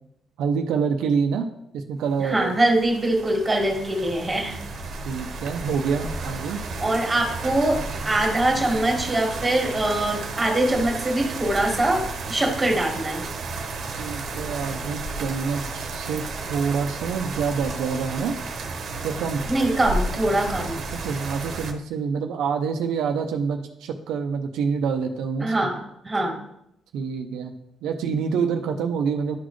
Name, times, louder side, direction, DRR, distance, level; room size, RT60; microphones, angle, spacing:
voice 1, 0.4-1.5 1.7-2.5 5.0-6.6 14.0-16.2 16.5-18.3 19.0-19.4 20.9-25.5 26.9-27.5 27.8-29.4, right 6 dB, 85° right, 4 dB, 0.6 m, -26 dB
voice 2, 2.2-4.6 6.8-13.2 19.5-20.8 25.4-26.4, right 1 dB, 15° right, 1 dB, 1.8 m, -23 dB
sound 1, 2.2-21.7, right 3 dB, 65° right, 1.0 m, -33 dB
11.5 x 4.1 x 3.1 m, 0.78 s
cardioid pair, 90°, 0 cm